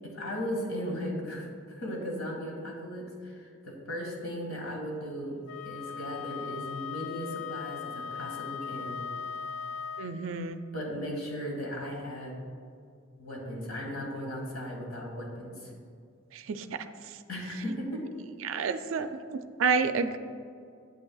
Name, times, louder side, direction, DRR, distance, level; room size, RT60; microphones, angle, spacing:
voice 1, 0.0-9.0 10.7-12.3 13.2-15.7 17.3-18.0, equal, 70° left, -1 dB, 1.7 m, -37 dB
Wind instrument woodwind instrument, 5.5-10.2, left 7 dB, 55° left, 0.3 m, -38 dB
voice 2, 10.0-10.6 16.3-16.8 18.4-20.2, right 5 dB, 60° right, 9 dB, 0.4 m, -30 dB
8.7 x 8.6 x 2.3 m, 2.3 s
head